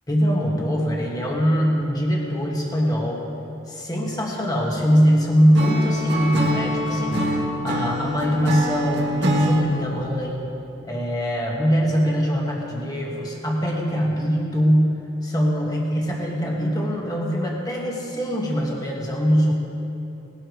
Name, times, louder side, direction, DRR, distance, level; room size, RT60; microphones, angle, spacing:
voice 1, 0.1-3.2 3.7-7.3 7.6-10.4 10.8-14.9 15.2-19.5, equal, 20° left, -2 dB, 1.6 m, -22 dB
Acoustic guitar / Strum, 5.5-9.6, equal, 65° right, 1.6 m, -24 dB
19.0 x 12.0 x 3.2 m, 2.9 s
head